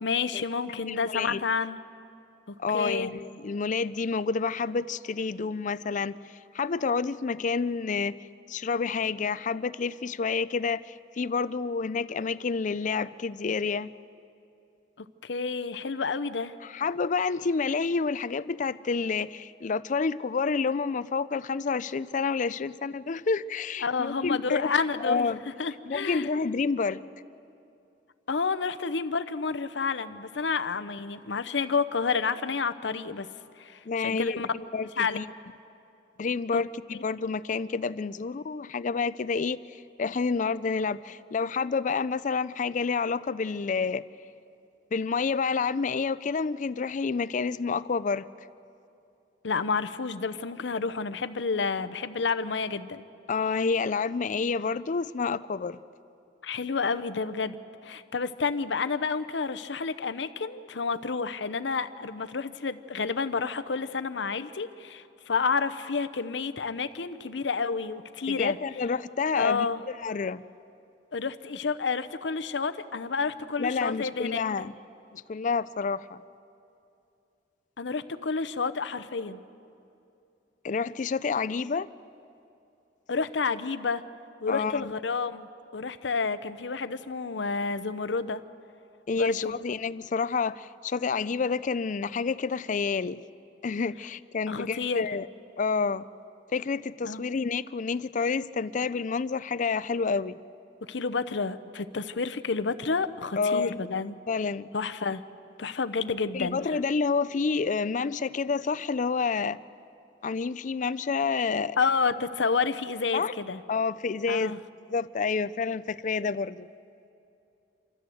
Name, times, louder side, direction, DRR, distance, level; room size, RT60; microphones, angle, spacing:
voice 1, 0.0-1.8 2.5-3.1 15.2-16.5 23.8-25.3 25.6-26.3 28.3-33.3 33.6-34.5 35.0-35.2 36.5-36.6 36.9-37.0 49.4-53.0 56.4-68.6 69.3-69.8 71.1-74.4 77.8-79.4 83.1-84.0 84.4-85.5 85.7-88.4 89.2-89.5 94.5-95.0 97.1-97.2 100.9-104.2 104.7-105.2 105.6-106.6 111.8-113.6 114.3-114.6, left 5 dB, 80° left, 12 dB, 0.7 m, -30 dB
voice 2, 0.9-1.4 2.6-6.1 6.5-8.2 8.5-13.9 16.6-24.7 25.0-25.4 25.9-27.0 33.9-35.3 36.2-44.0 44.9-48.3 53.3-55.8 68.3-70.4 73.6-74.7 75.1-76.2 80.6-81.9 84.5-84.9 89.1-93.2 93.6-95.3 95.6-96.0 96.5-100.4 103.4-103.8 104.3-104.7 106.3-109.6 110.2-111.8 113.1-113.3 113.7-114.6 114.9-116.7, left 5 dB, 45° left, 16 dB, 0.4 m, -29 dB
27.5 x 13.5 x 7.8 m, 2.6 s
head